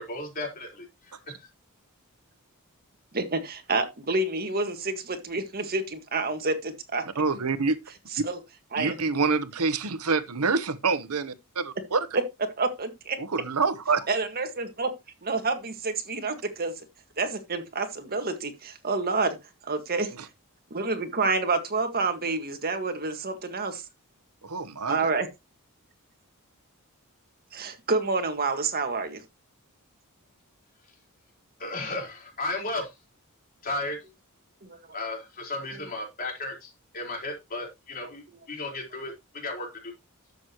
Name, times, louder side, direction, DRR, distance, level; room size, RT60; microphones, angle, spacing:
voice 1, 0.0-1.5 31.6-32.9 33.6-34.0 34.9-39.9, left 2 dB, 40° left, 4.2 m, -35 dB
voice 2, 3.1-7.0 8.1-8.4 8.7-9.0 12.1-12.2 12.6-13.2 14.1-14.9 15.2-16.8 17.2-19.4 19.6-20.1 20.7-23.9 24.9-25.3 27.5-29.2 34.6-34.8, right 3 dB, 45° right, 1.8 m, -28 dB
voice 3, 7.2-7.8 8.8-12.1 13.2-14.1 24.4-25.1, right 4 dB, 75° right, 1.0 m, -26 dB
12.0 x 8.0 x 3.0 m
head